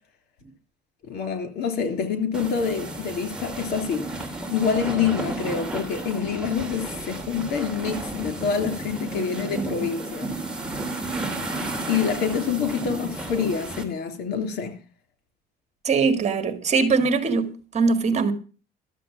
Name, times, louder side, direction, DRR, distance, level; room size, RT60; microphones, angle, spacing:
voice 1, 1.1-10.3 11.9-14.7, left 6 dB, 70° left, 3.5 m, -26 dB
sound 1, 2.3-13.8, right 2 dB, 5° right, 3.1 m, -32 dB
voice 2, 15.8-18.3, right 4 dB, 40° right, 1.9 m, -22 dB
13.0 x 7.6 x 7.3 m
cardioid pair, 110°, 17 cm